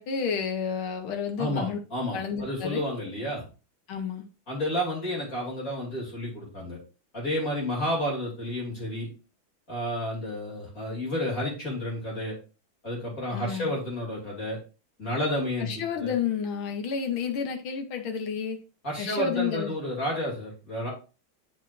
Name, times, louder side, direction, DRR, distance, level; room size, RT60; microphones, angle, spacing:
voice 1, 0.0-1.8 2.1-2.8 3.9-4.3 13.3-13.7 15.6-18.6 19.0-19.7, left 6 dB, 85° left, 1.9 m, -30 dB
voice 2, 1.4-3.4 4.5-6.8 7.1-9.1 9.7-12.3 12.8-14.6 15.0-16.1 18.8-20.9, equal, 40° left, 3.1 m, -31 dB
10.5 x 4.5 x 2.5 m
omnidirectional pair, 2.2 m